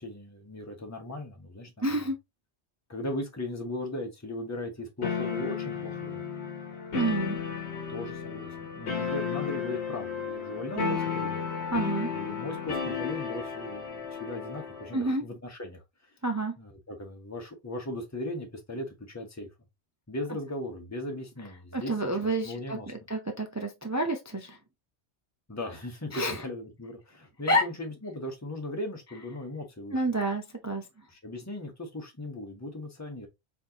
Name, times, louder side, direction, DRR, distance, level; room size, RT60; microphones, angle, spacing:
voice 1, 0.0-1.7 2.9-6.2 7.9-11.4 12.1-16.1 16.6-19.5 20.1-23.0 25.5-30.0 31.1-33.3, left 1 dB, 15° left, 1.1 m, -38 dB
voice 2, 1.8-2.2 6.9-7.4 10.8-11.0 11.7-12.1 14.9-15.2 16.2-16.6 21.7-24.6 26.1-26.4 27.5-27.6 29.9-30.8, right 1 dB, 20° right, 0.5 m, -29 dB
sound 1, 5.0-15.1, left 6 dB, 75° left, 1.2 m, -33 dB
4.4 x 3.5 x 2.9 m
omnidirectional pair, 1.1 m